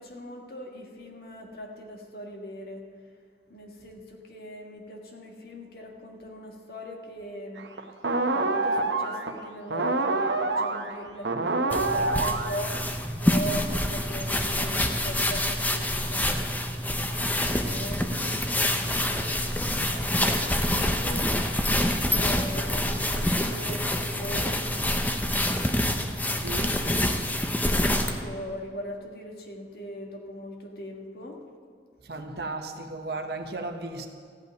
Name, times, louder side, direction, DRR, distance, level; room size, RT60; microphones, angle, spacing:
voice 1, 0.0-2.8 3.5-7.7 8.3-12.8 13.2-16.3 17.5-21.3 22.2-24.6 28.2-31.4, equal, 60° left, 1 dB, 1.7 m, -40 dB
sound 1, 7.6-9.4 9.7-12.8, right 3 dB, 85° right, 0.9 m, -26 dB
sound 2, 11.7-28.2, left 1 dB, 10° left, 0.7 m, -26 dB
voice 2, 26.3-26.8 32.0-34.1, right 2 dB, 60° right, 5 dB, 1.1 m, -35 dB
14.5 x 5.6 x 9.3 m, 2.1 s
head